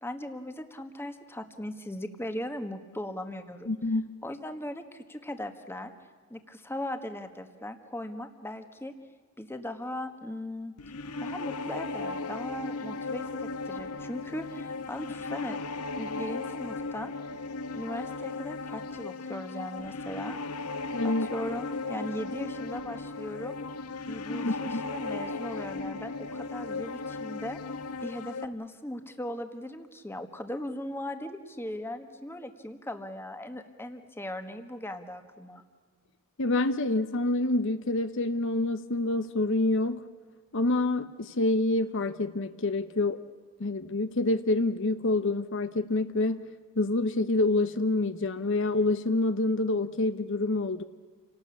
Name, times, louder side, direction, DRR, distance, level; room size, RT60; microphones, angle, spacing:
voice 1, 0.0-3.7 4.2-5.9 6.3-8.9 9.4-10.7 11.2-15.6 16.0-17.1 17.7-20.4 21.0-23.6 24.1-27.6 28.0-35.6, left 1 dB, 10° left, 7 dB, 1.5 m, -38 dB
voice 2, 3.7-4.1 20.9-21.3 24.4-24.8 36.4-40.0 40.5-43.2 43.6-46.5 46.8-50.8, left 2 dB, 55° left, 11 dB, 0.8 m, -27 dB
sound 1, 10.8-28.5, left 3 dB, 90° left, 1.0 m, -36 dB
28.5 x 18.5 x 8.4 m, 1.5 s
head